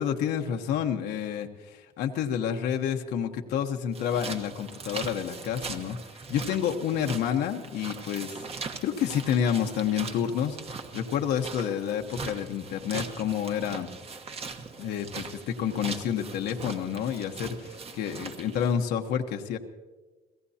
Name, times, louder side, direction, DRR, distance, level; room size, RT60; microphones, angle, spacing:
voice 1, 0.0-6.0 6.3-8.3 8.8-10.6 10.9-13.9 14.8-19.6, left 8 dB, 80° left, 4 dB, 1.1 m, -29 dB
sound 1, 3.9-18.8, right 4 dB, 35° right, 1.2 m, -40 dB
29.5 x 17.0 x 2.9 m, 1.3 s
cardioid pair, 110°, 17 cm